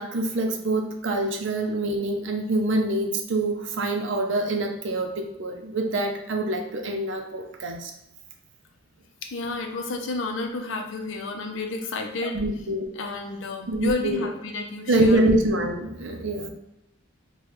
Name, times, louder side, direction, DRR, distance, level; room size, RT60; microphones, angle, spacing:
voice 1, 0.0-7.9 12.3-12.9 13.7-14.3 14.9-16.5, right 1 dB, 65° right, 4 dB, 0.5 m, -25 dB
voice 2, 9.2-12.4 13.0-15.2, left 3 dB, 70° left, 4 dB, 0.5 m, -31 dB
3.3 x 2.2 x 3.0 m, 0.88 s
head